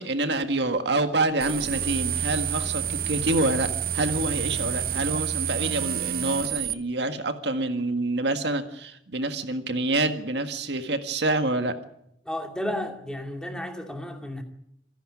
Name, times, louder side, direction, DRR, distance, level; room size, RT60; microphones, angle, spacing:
voice 1, 0.0-3.7 3.9-11.7, right 2 dB, 65° right, 7 dB, 1.7 m, -27 dB
sound 1, 1.4-6.7, right 8 dB, 50° right, 0.9 m, -29 dB
voice 2, 12.3-14.4, left 1 dB, 5° left, 4 dB, 2.4 m, -32 dB
28.0 x 11.5 x 9.8 m, 0.78 s
head